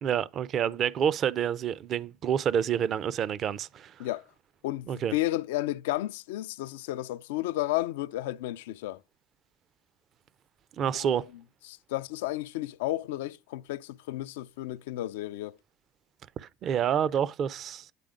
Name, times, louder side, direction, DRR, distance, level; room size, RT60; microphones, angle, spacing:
voice 1, 0.0-4.1 4.9-5.1 10.8-11.2 16.4-17.9, right 9 dB, 50° right, 0.5 m, -28 dB
voice 2, 4.6-9.0 10.9-11.2 11.7-15.6, left 16 dB, 75° left, 0.3 m, -32 dB
9.2 x 3.4 x 5.0 m
hypercardioid pair, 70°, 0 cm